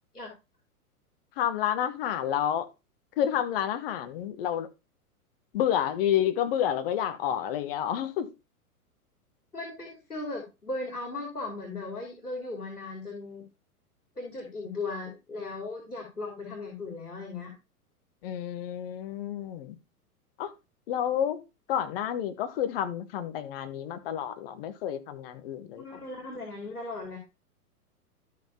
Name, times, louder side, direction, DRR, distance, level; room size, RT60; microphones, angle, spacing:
voice 1, 1.4-2.7 3.2-4.7 5.5-8.3 18.2-19.8 20.4-20.5 20.9-21.4 21.7-26.0, left 10 dB, 40° left, 1.1 m, -29 dB
voice 2, 9.5-13.4 14.2-17.5 25.8-27.2, left 3 dB, 80° left, 2.8 m, -37 dB
12.5 x 5.7 x 2.8 m
figure-of-eight pair, 105°, 45 cm